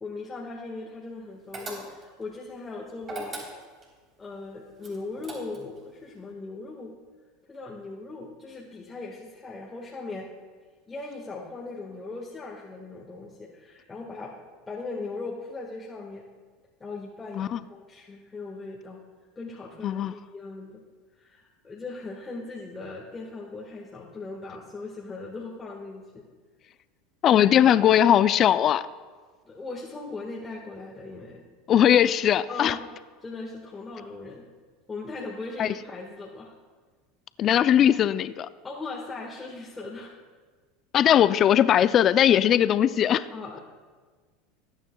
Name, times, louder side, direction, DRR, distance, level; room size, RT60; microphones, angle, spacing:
voice 1, 0.0-3.4 4.2-6.9 7.5-10.3 10.9-14.3 14.7-16.2 16.8-19.0 19.3-20.8 21.1-26.2 29.4-31.4 32.5-32.8 33.2-34.4 34.9-36.5 38.6-40.1 43.3-43.6, left 3 dB, 20° left, -4 dB, 1.6 m, -39 dB
sound 1, 1.5-2.2 3.0-3.9 4.8-5.8, right 2 dB, 35° right, 3.5 m, -39 dB
voice 2, 19.8-20.1 27.2-28.8 31.7-32.8 35.6-35.7 37.4-38.5 40.9-43.3, left 10 dB, 40° left, 15 dB, 0.4 m, -20 dB
20.5 x 9.1 x 2.3 m, 1.5 s
hypercardioid pair, 95°, 0 cm